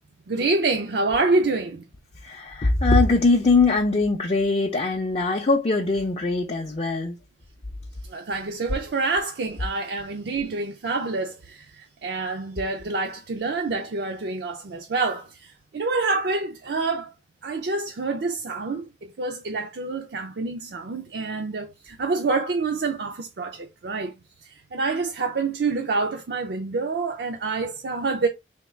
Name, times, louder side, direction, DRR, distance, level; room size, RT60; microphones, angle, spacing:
voice 1, 0.3-1.8 8.1-17.1 17.4-24.1 24.4-28.3, right 3 dB, 65° right, 0.5 m, -27 dB
voice 2, 2.2-7.2, left 3 dB, 35° left, 0.5 m, -21 dB
3.5 x 2.3 x 4.3 m
head